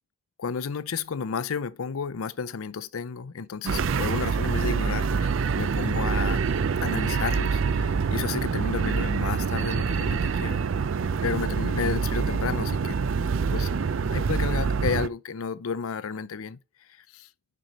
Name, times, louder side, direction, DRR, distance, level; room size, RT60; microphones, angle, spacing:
voice 1, 0.4-5.3 5.6-6.4 6.8-10.6 11.2-13.0 13.5-13.7 14.1-16.6 17.0-17.3, left 6 dB, 90° left, 0.5 m, -32 dB
sound 1, 3.7-15.1, right 5 dB, 65° right, 0.4 m, -26 dB
6.1 x 5.4 x 4.1 m
head